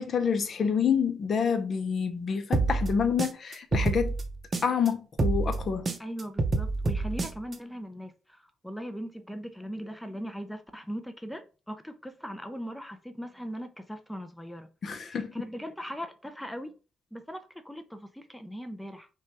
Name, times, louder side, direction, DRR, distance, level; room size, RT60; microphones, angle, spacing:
voice 1, 0.0-4.1 4.6-5.9 14.8-15.3, left 6 dB, 50° left, 0.7 m, -28 dB
sound 1, 2.5-4.9 5.2-7.5, right 3 dB, 35° right, 0.7 m, -28 dB
voice 2, 6.0-14.7 15.0-16.7 17.1-19.1, equal, 5° left, 0.5 m, -39 dB
5.5 x 2.3 x 3.3 m
cardioid pair, 90°, 0 cm